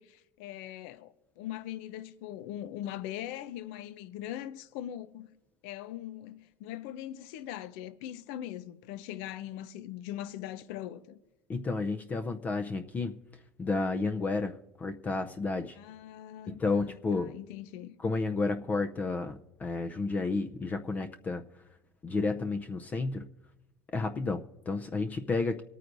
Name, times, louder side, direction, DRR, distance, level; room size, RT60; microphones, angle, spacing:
voice 1, 0.0-5.3 5.6-11.2 15.7-18.0, left 12 dB, 75° left, 0.6 m, -41 dB
voice 2, 11.5-13.2 13.6-15.8 16.5-17.3 18.0-21.4 22.0-23.3 23.9-25.6, left 3 dB, 25° left, 0.6 m, -31 dB
25.0 x 9.2 x 2.6 m
supercardioid pair, 125°, 6 cm